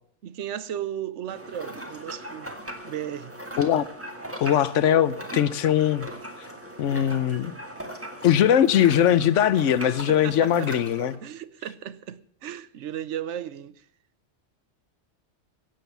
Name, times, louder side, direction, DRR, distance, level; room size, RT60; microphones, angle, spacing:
voice 1, 0.2-2.5 2.8-3.3 10.1-10.7 11.2-13.9, right 10 dB, 75° right, 1.0 m, -35 dB
sound 1, 1.3-11.2, right 1 dB, 10° right, 1.7 m, -39 dB
voice 2, 4.4-6.1 6.8-7.5 8.2-11.2, left 10 dB, 80° left, 1.1 m, -21 dB
16.5 x 7.7 x 7.0 m
omnidirectional pair, 1.2 m